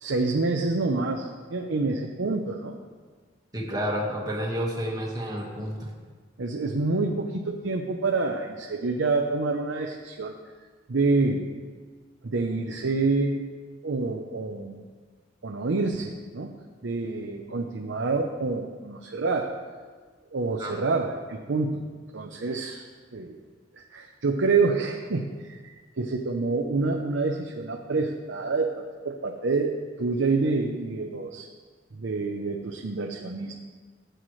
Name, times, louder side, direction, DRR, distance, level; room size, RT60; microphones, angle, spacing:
voice 1, 0.0-2.8 6.4-10.3 10.9-11.5 12.2-13.5 13.8-14.8 15.4-16.5 16.8-19.5 20.3-22.9 23.1-23.4 23.7-31.5 31.9-33.5, right 3 dB, 85° right, 2 dB, 0.7 m, -27 dB
voice 2, 3.5-5.9 20.6-20.8, equal, 20° right, -2 dB, 1.6 m, -30 dB
14.0 x 7.9 x 3.2 m, 1.5 s
head